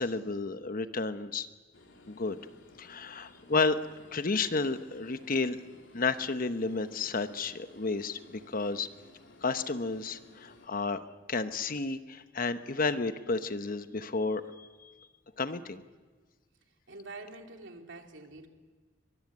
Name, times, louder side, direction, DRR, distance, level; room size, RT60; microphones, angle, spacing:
voice 1, 0.0-1.5 2.1-2.4 2.8-3.8 4.1-5.6 5.9-8.9 9.4-11.0 11.3-14.7 15.4-15.8, left 3 dB, 50° left, 10 dB, 1.0 m, -31 dB
sound 1, 1.7-10.7, left 2 dB, 85° left, 3.2 m, -57 dB
voice 2, 16.9-18.5, right 3 dB, 75° right, 3 dB, 3.0 m, -46 dB
23.5 x 22.0 x 9.6 m, 1.4 s
head